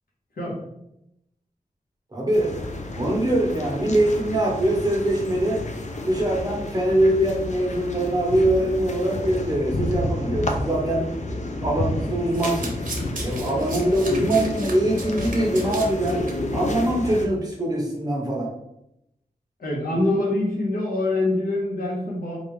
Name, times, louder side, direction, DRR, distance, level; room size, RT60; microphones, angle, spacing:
voice 1, 2.1-2.5 2.9-5.6 6.0-11.1 11.6-12.8 13.2-16.2 16.5-18.5, right 1 dB, 25° right, -2 dB, 1.2 m, -23 dB
sound 1, 2.3-17.3, left 2 dB, 55° left, 0.5 m, -30 dB
Domestic sounds home sounds, 12.2-16.3 16.7-16.9 17.1-17.2, right 2 dB, 65° right, 0.9 m, -36 dB
voice 2, 19.6-22.4, left 2 dB, 90° left, -4 dB, 1.2 m, -24 dB
3.9 x 2.6 x 3.2 m, 0.81 s
wide cardioid pair, 80°, 15 cm